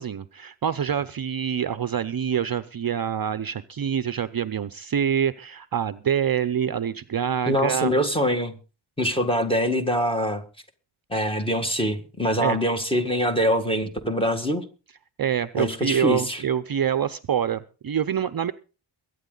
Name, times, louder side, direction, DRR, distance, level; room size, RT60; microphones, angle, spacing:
voice 1, 0.0-7.9 12.4-12.6 15.2-18.5, right 8 dB, 45° right, 13 dB, 0.6 m, -26 dB
voice 2, 7.4-8.5 9.0-10.4 11.1-14.6 15.5-16.4, equal, 10° left, 7 dB, 1.7 m, -24 dB
23.0 x 9.2 x 3.9 m, 0.34 s
wide cardioid pair, 150°, 49 cm